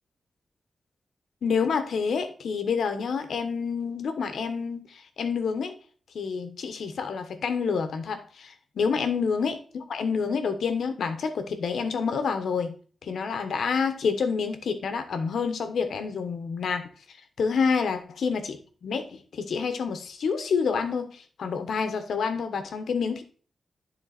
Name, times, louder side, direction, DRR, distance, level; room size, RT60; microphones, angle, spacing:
voice 1, 1.4-5.7 6.1-12.7 13.0-16.9 17.4-18.6 18.8-23.2, left 5 dB, 85° left, 8 dB, 1.1 m, -28 dB
10.5 x 3.8 x 4.2 m, 0.40 s
wide cardioid pair, 110°, 0 cm